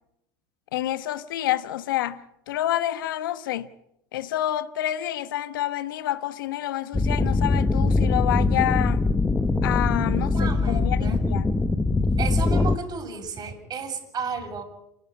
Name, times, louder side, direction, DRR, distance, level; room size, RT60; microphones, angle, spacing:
voice 1, 0.7-3.7 4.1-9.1 9.6-11.5, left 13 dB, 80° left, 1.2 m, -28 dB
back to the tasting room, 6.9-12.8, left 3 dB, 15° left, 1.2 m, -22 dB
voice 2, 10.3-11.2 12.2-14.6, right 5 dB, 35° right, 7.9 m, -32 dB
28.5 x 12.0 x 9.9 m
hypercardioid pair, 95°, 11 cm